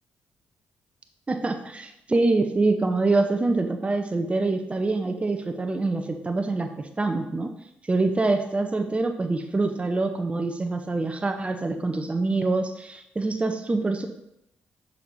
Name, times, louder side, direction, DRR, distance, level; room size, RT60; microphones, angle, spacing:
voice 1, 1.3-7.5 7.9-14.1, right 3 dB, 25° right, 6 dB, 0.7 m, -25 dB
6.3 x 4.2 x 4.1 m, 0.83 s
supercardioid pair, 50°, 5 cm